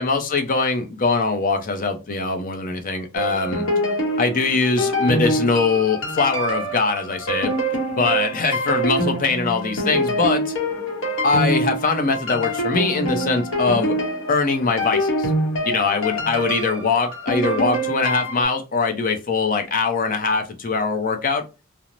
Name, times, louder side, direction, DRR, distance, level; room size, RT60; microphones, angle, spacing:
voice 1, 0.0-3.7 4.2-7.5 7.9-10.5 11.2-13.9 14.3-15.3 15.6-21.4, left 4 dB, 40° left, 0.5 m, -22 dB
sound 1, 3.1-18.4, equal, 65° left, 0.8 m, -25 dB
3.0 x 2.0 x 2.5 m
head